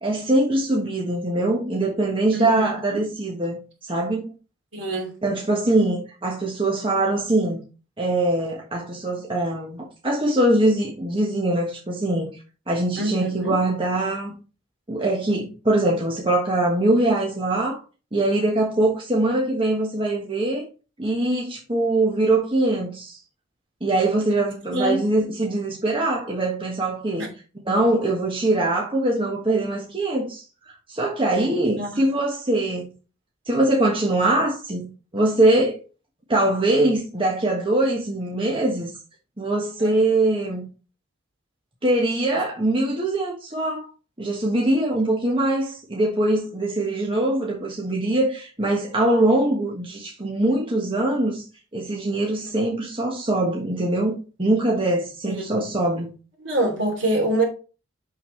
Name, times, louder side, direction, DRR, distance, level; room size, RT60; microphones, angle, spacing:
voice 1, 0.0-4.3 5.2-7.6 8.0-12.3 12.7-14.4 14.9-17.8 18.1-20.6 21.0-23.2 23.8-27.3 27.7-32.9 33.5-35.8 36.3-38.9 39.4-40.7 41.8-43.9 44.2-51.4 51.7-56.1, right 2 dB, 25° right, 1.3 m, -22 dB
voice 2, 2.3-3.0 4.7-5.1 13.0-13.6 24.7-25.0 31.8-32.0 39.8-39.9 55.2-55.5 56.4-57.4, right 1 dB, 65° right, 2.8 m, -25 dB
6.5 x 6.1 x 3.2 m
head